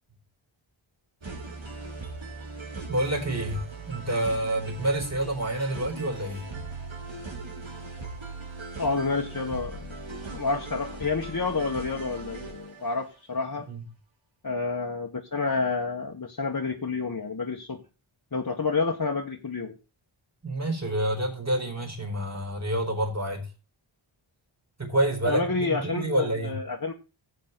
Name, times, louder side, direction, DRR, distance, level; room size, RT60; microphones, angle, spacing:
sound 1, 1.2-13.0, right 3 dB, 65° right, 3.7 m, -39 dB
voice 1, 2.9-6.4 13.7-13.8 20.4-23.5 24.8-26.6, right 1 dB, 30° right, 4.4 m, -28 dB
voice 2, 8.8-9.9 10.2-13.7 14.4-17.8 18.3-19.8 25.2-26.9, left 4 dB, 40° left, 1.5 m, -29 dB
16.0 x 8.3 x 4.1 m
wide cardioid pair, 80°, 50 cm